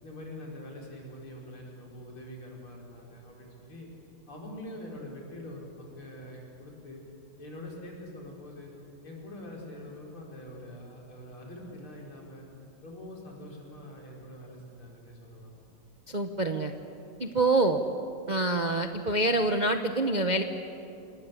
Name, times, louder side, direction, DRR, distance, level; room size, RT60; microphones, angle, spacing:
voice 1, 0.0-3.9 4.3-7.0 7.4-8.7 9.0-12.5 12.8-15.5, left 1 dB, 80° left, -2 dB, 5.6 m, -44 dB
voice 2, 16.1-16.7 17.2-17.8 18.3-20.4, right 2 dB, 40° right, 5 dB, 0.6 m, -26 dB
28.0 x 20.5 x 8.3 m, 2.8 s
omnidirectional pair, 2.3 m